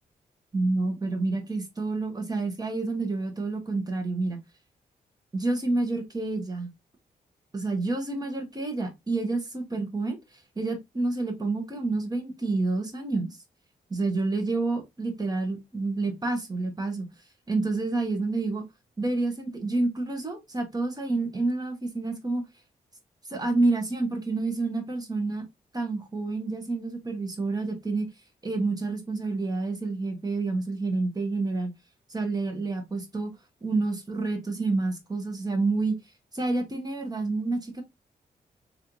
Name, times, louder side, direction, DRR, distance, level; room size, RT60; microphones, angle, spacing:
voice 1, 0.5-4.4 5.3-6.7 7.5-13.4 13.9-17.1 17.5-18.6 19.0-22.4 23.3-25.4 25.7-28.1 28.4-31.7 32.1-33.3 33.6-35.9 36.3-37.8, right 3 dB, 25° right, 1.1 m, -28 dB
3.2 x 2.6 x 2.9 m
cardioid pair, 80°, 16 cm